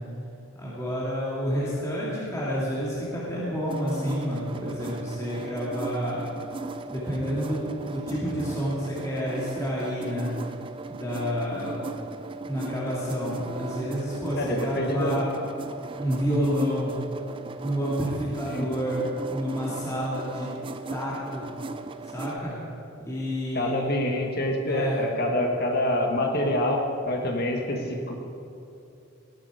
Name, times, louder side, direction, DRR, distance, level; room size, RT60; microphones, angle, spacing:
voice 1, 0.6-6.3 6.9-10.3 10.9-11.8 12.4-15.3 16.0-17.0 17.6-20.5 20.9-21.5 22.0-22.6 23.0-23.9 24.7-25.0, equal, 15° left, -7 dB, 2.2 m, -29 dB
sound 1, 3.7-22.4, right 3 dB, 20° right, 0.3 m, -37 dB
voice 2, 11.6-11.9 14.4-15.2 18.5-18.7 23.5-26.8 27.1-28.2, left 1 dB, 45° left, 1 dB, 1.5 m, -26 dB
18.5 x 8.7 x 4.9 m, 2.7 s
head